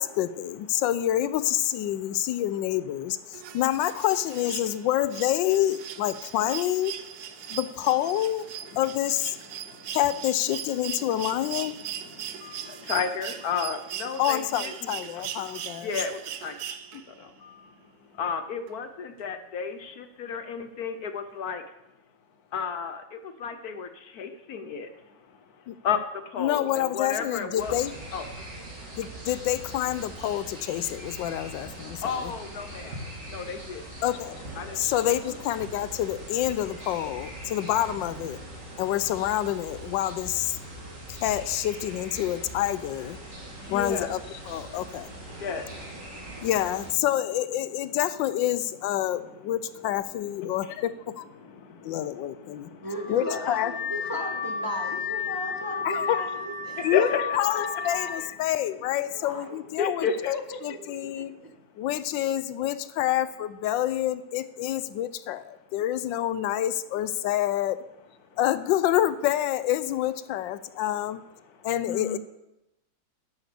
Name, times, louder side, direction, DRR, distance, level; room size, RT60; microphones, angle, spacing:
voice 1, 0.0-6.9 7.5-8.4 8.8-9.4 9.9-11.7 14.2-15.9 25.7-25.8 26.4-27.9 29.0-32.3 34.0-34.4 34.8-38.4 38.8-40.6 41.1-43.2 43.7-44.2 44.5-45.1 46.4-51.2 51.8-52.7 53.1-53.7 55.8-56.2 56.8-61.3 61.8-67.8 68.4-71.2 71.6-72.2, left 12 dB, 80° left, 14 dB, 1.3 m, -27 dB
voice 2, 1.9-2.4 3.3-3.6 7.4-7.6 8.6-8.8 9.4-10.0 11.0-11.1 11.6-21.6 22.5-27.7 28.1-28.2 32.0-33.0 33.3-33.8 34.6-34.8 35.1-35.4 43.3-44.1 44.6-46.5 49.0-49.6 50.1-50.8 51.4-52.9 54.5-56.1 56.6-57.6 59.8-60.3 61.2-61.5 68.3-68.4 70.6-70.8 71.4-72.2, left 6 dB, 65° left, 9 dB, 1.1 m, -35 dB
sound 1, 3.3-17.2 18.7-18.8, right 10 dB, 70° right, 1.1 m, -39 dB
sound 2, 27.6-46.9, right 1 dB, 45° right, 2.4 m, -41 dB
voice 3, 52.8-57.1 57.5-58.2 59.1-59.6 60.7-61.5, left 1 dB, 15° right, 2 dB, 0.9 m, -36 dB
Car / Alarm, 52.9-58.3, left 6 dB, 45° left, 1.9 m, -32 dB
10.0 x 6.9 x 6.8 m, 0.89 s
omnidirectional pair, 2.0 m